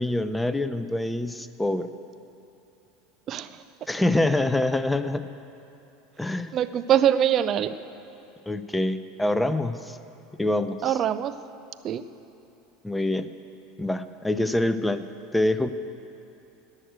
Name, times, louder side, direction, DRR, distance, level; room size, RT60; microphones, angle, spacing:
voice 1, 0.0-1.9 3.9-5.3 6.2-6.6 8.5-10.0 10.4-11.0 12.8-13.3 13.8-15.0 15.3-15.7, left 1 dB, 5° left, 11 dB, 0.6 m, -25 dB
voice 2, 6.5-7.7 10.8-11.3 11.8-12.0, right 10 dB, 40° right, 13 dB, 0.6 m, -23 dB
18.5 x 6.5 x 8.0 m, 2.9 s
hypercardioid pair, 75°, 0 cm